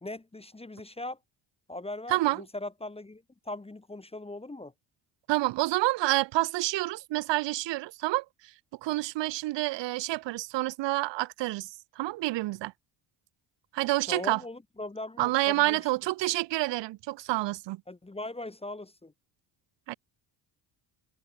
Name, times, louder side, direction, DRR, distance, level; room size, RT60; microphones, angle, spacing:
voice 1, 0.0-1.2 1.7-4.7 14.1-15.8 17.9-19.1, left 2 dB, 10° left, 1.6 m, -39 dB
voice 2, 2.1-2.4 5.3-8.2 8.8-11.7 12.0-12.7 13.7-14.4 15.2-17.8 19.9-20.0, right 18 dB, 70° right, 0.6 m, -28 dB
cardioid pair, 105°, 46 cm